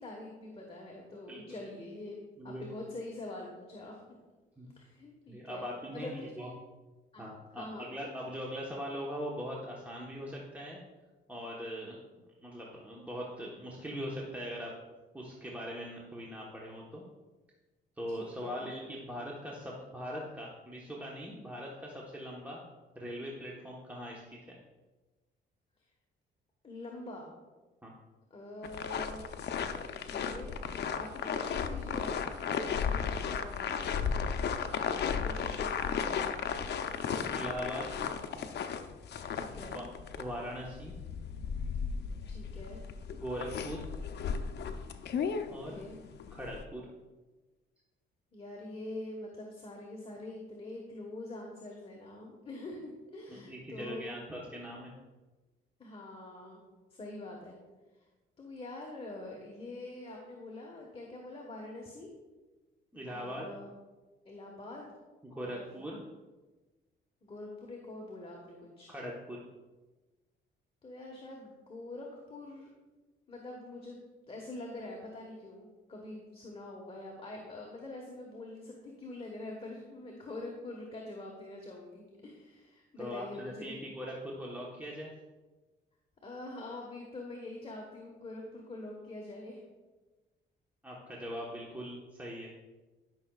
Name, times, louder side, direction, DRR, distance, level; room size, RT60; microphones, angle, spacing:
voice 1, 0.0-4.2 4.7-6.5 7.1-7.3 7.6-7.9 18.2-18.7 26.6-27.3 28.3-29.3 29.7-32.2 32.5-34.1 35.2-36.5 39.3-39.8 42.3-42.8 45.5-46.0 48.3-54.2 55.8-56.6 56.9-57.6 58.4-62.1 63.0-63.8 64.2-64.9 65.3-65.8 67.2-69.0 70.8-72.7 73.3-74.0 74.3-83.8 86.2-89.6, left 2 dB, 30° left, -1 dB, 1.4 m, -45 dB
voice 2, 2.4-2.7 4.6-4.7 5.3-6.5 7.2-10.8 11.3-11.9 12.4-14.7 15.1-17.0 18.0-22.6 22.9-24.6 27.8-27.9 34.8-35.1 37.3-38.0 39.5-39.9 40.2-40.9 43.1-43.8 45.5-45.8 46.3-46.9 53.3-54.9 62.9-63.5 65.2-66.0 68.9-69.4 83.0-85.1 90.8-92.5, equal, 10° right, -3 dB, 1.2 m, -41 dB
sound 1, 28.6-46.6, left 6 dB, 60° left, 0.6 m, -35 dB
12.5 x 6.0 x 2.4 m, 1.2 s
cardioid pair, 90°, 20 cm